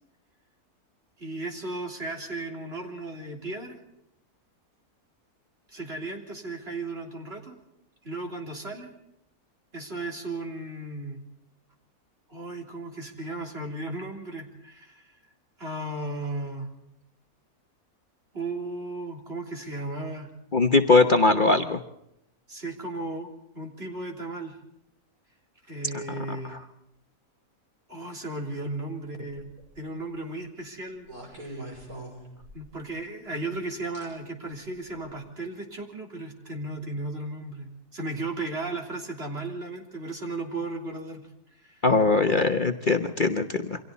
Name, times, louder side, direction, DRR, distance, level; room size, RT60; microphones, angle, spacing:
voice 1, 1.2-3.8 5.7-7.6 8.0-8.9 9.7-11.2 12.3-15.1 15.6-16.7 18.3-20.3 22.5-23.3 23.5-24.6 25.7-26.6 27.9-31.8 32.5-41.3 41.6-41.8, right 2 dB, 40° right, 2 dB, 3.8 m, -35 dB
voice 2, 20.5-21.8 26.5-26.6 41.8-43.8, left 3 dB, 35° left, 5 dB, 1.1 m, -21 dB
sound 1, 29.3-29.7 31.0-32.8 33.9-34.1 34.9-35.1, right 1 dB, 75° right, 6.7 m, -42 dB
29.0 x 24.5 x 4.1 m, 0.79 s
omnidirectional pair, 1.6 m